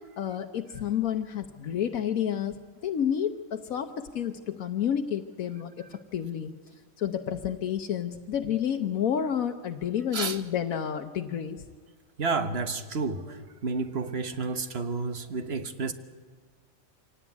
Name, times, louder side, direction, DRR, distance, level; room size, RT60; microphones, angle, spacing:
voice 1, 0.2-2.6 2.8-6.5 7.0-11.6, left 9 dB, 80° left, 6 dB, 1.3 m, -30 dB
voice 2, 12.2-15.9, right 4 dB, 50° right, 10 dB, 1.4 m, -31 dB
25.0 x 18.0 x 9.5 m, 1.5 s
omnidirectional pair, 1.4 m